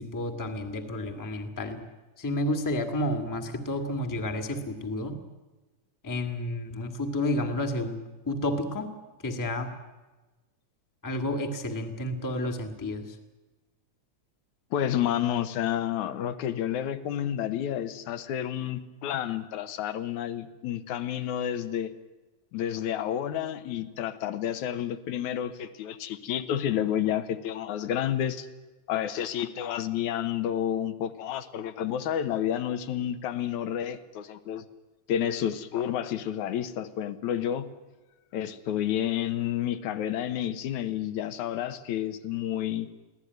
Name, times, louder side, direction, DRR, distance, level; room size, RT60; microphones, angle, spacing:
voice 1, 0.0-1.8 2.2-5.2 6.0-8.0 8.2-8.9 9.2-9.7 11.0-13.1, left 1 dB, 10° left, 5 dB, 1.2 m, -31 dB
voice 2, 14.7-21.9 22.5-28.5 28.9-34.7 35.1-37.7 38.3-42.9, left 10 dB, 75° left, 11 dB, 2.5 m, -30 dB
23.5 x 16.5 x 9.4 m, 1.2 s
omnidirectional pair, 3.5 m